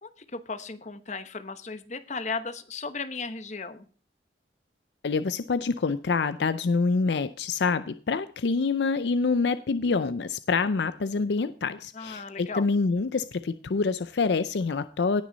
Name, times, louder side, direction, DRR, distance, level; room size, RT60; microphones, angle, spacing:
voice 1, 0.0-3.9 11.9-12.7, left 4 dB, 40° left, 10 dB, 1.0 m, -36 dB
voice 2, 5.0-15.2, left 4 dB, 70° left, 13 dB, 0.5 m, -26 dB
18.0 x 6.3 x 4.0 m, 0.41 s
head